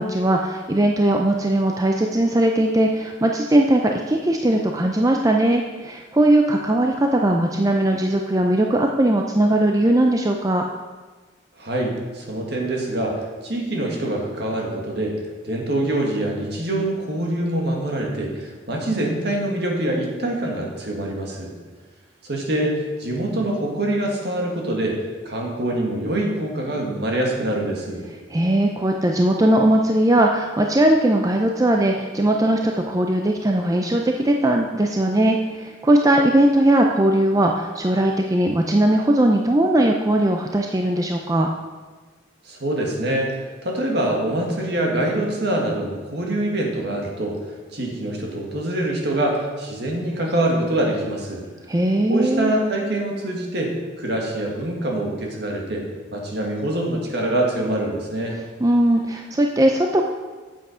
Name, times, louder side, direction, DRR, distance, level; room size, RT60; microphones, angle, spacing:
voice 1, 0.0-10.6 28.3-41.5 51.7-52.5 58.6-60.1, right 1 dB, 20° right, 2 dB, 0.5 m, -19 dB
voice 2, 11.6-21.5 22.2-28.0 42.4-43.4 43.6-51.4 52.1-55.8 56.1-58.4, right 1 dB, 60° right, 0 dB, 1.8 m, -25 dB
8.0 x 7.7 x 5.0 m, 1.3 s
head